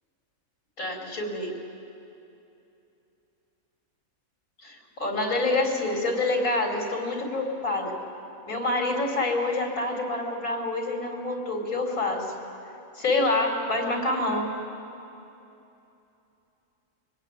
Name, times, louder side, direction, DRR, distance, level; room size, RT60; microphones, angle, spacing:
voice 1, 0.8-1.5 4.6-7.9 8.5-12.3 12.9-14.6, left 2 dB, 80° left, 1 dB, 4.4 m, -27 dB
25.0 x 19.5 x 9.7 m, 2.8 s
omnidirectional pair, 1.5 m